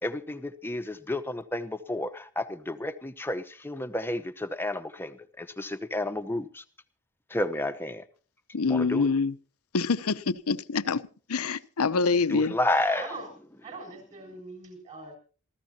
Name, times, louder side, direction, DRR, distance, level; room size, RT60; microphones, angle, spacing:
voice 1, 0.0-6.6 7.3-8.1 8.7-9.1 12.3-13.1, left 1 dB, 10° left, 0.9 m, -31 dB
voice 2, 8.5-9.3 9.7-12.5, left 4 dB, 80° left, 0.8 m, -26 dB
voice 3, 12.4-13.3 13.6-15.2, right 3 dB, 30° right, 7.5 m, -41 dB
27.5 x 14.5 x 2.9 m
head